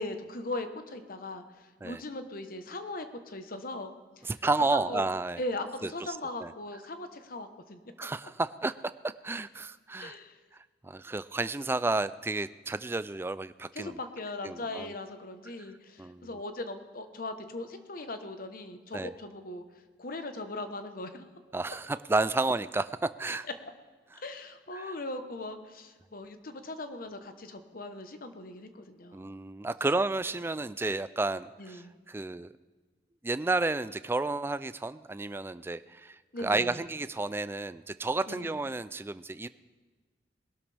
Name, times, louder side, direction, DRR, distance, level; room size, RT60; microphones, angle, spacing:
voice 1, 0.0-3.9 4.7-5.0 5.4-7.8 10.0-10.4 13.7-19.6 20.0-21.2 24.2-29.3 31.6-31.9 36.3-36.8 38.3-38.5, left 2 dB, 55° left, 8 dB, 1.0 m, -39 dB
voice 2, 4.2-5.4 5.8-5.9 6.4-6.5 8.0-8.7 9.2-10.2 10.8-14.0 14.4-14.9 16.0-16.3 18.9-19.1 21.5-23.5 24.7-24.9 29.1-32.5 33.2-39.5, right 2 dB, 15° right, 14 dB, 0.3 m, -31 dB
20.5 x 12.5 x 3.4 m, 1.4 s
head